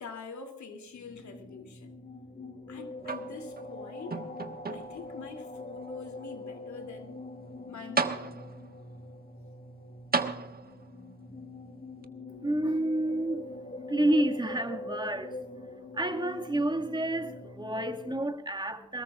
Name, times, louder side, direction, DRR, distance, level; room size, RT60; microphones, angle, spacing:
voice 1, 0.0-2.0 2.7-4.2 4.7-7.2 7.7-8.3, left 5 dB, 70° left, 2.9 m, -45 dB
sound 1, 0.9-18.2, left 2 dB, 25° left, 2.1 m, -43 dB
sound 2, 3.0-3.7 4.1-5.1 5.8-5.9 7.5-7.6 8.0-8.7 10.1-11.0 12.0-12.1, right 4 dB, 30° right, 1.4 m, -33 dB
voice 2, 12.4-13.5 13.9-15.4 15.9-19.0, right 1 dB, 15° right, 2.1 m, -29 dB
23.0 x 20.5 x 2.5 m
cardioid pair, 85°, 30 cm